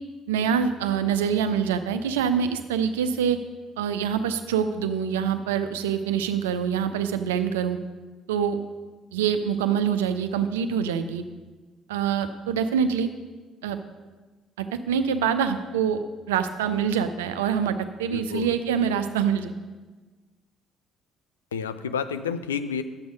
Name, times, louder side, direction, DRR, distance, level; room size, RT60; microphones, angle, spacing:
voice 1, 0.3-3.4 3.8-7.8 8.3-8.6 9.1-11.2 11.9-13.1 13.6-13.8 14.6-16.0 16.3-19.5, right 7 dB, 70° right, 9 dB, 0.6 m, -25 dB
voice 2, 18.1-18.6 21.5-22.8, left 7 dB, 75° left, 10 dB, 0.4 m, -30 dB
10.5 x 7.8 x 5.2 m, 1.3 s
figure-of-eight pair, 50°, 0 cm